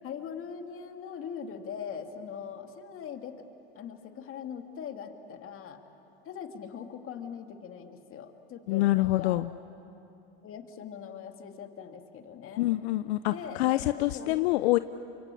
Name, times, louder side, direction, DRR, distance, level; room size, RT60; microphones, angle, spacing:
voice 1, 0.0-3.4 3.8-5.8 6.2-9.4 10.4-12.7 13.3-14.5, left 7 dB, 40° left, 5 dB, 2.5 m, -41 dB
voice 2, 8.7-9.5 12.6-14.8, left 17 dB, 75° left, 12 dB, 0.7 m, -26 dB
28.5 x 24.5 x 8.5 m, 2.8 s
hypercardioid pair, 100°, 32 cm